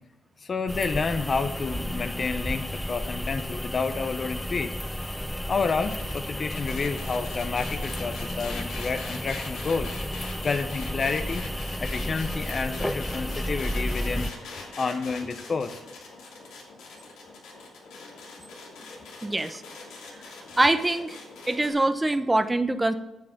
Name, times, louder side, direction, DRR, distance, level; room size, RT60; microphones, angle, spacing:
voice 1, 0.4-4.8 5.5-9.9 10.4-11.5 11.8-14.3 14.8-15.8, left 4 dB, 40° left, 9 dB, 0.8 m, -29 dB
sound 1, 0.7-14.3, equal, 5° left, 0.5 m, -32 dB
sound 2, 4.8-21.7, left 3 dB, 85° left, 3.0 m, -43 dB
voice 2, 19.2-19.6 20.6-21.2 21.5-22.9, right 2 dB, 15° right, 10 dB, 0.9 m, -23 dB
9.3 x 7.6 x 7.3 m, 0.97 s
cardioid pair, 90°, 0 cm